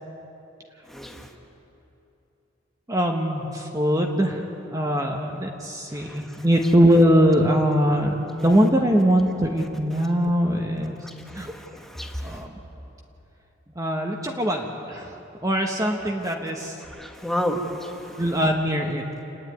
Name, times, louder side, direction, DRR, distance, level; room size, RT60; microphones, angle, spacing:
voice 1, 0.9-1.3 6.1-6.2 11.3-12.4 17.0-17.9, equal, ahead, 2 dB, 1.4 m, -30 dB
voice 2, 2.9-4.5 4.7-11.0 11.3-11.5 12.2-12.6 13.7-15.1 15.4-16.8 18.2-19.0, equal, 20° right, 1 dB, 1.2 m, -22 dB
28.0 x 10.0 x 9.3 m, 2.9 s
head